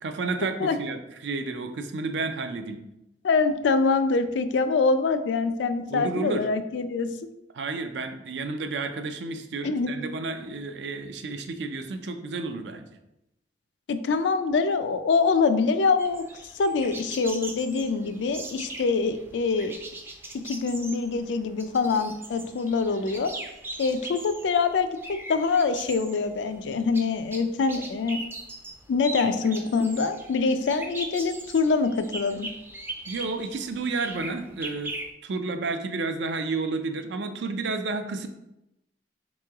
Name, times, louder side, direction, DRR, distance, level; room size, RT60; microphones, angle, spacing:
voice 1, 0.0-2.8 5.9-6.5 7.5-12.9 33.1-34.9 35.2-38.3, right 3 dB, 70° right, 7 dB, 0.4 m, -31 dB
voice 2, 3.2-7.2 9.6-9.9 13.9-16.3 16.5-19.8 20.4-23.3 23.8-24.9 25.3-28.2 28.9-32.5, left 4 dB, 80° left, 10 dB, 0.4 m, -24 dB
sound 1, 16.0-35.1, right 2 dB, 10° right, 0.4 m, -40 dB
3.7 x 3.0 x 3.4 m, 0.87 s
head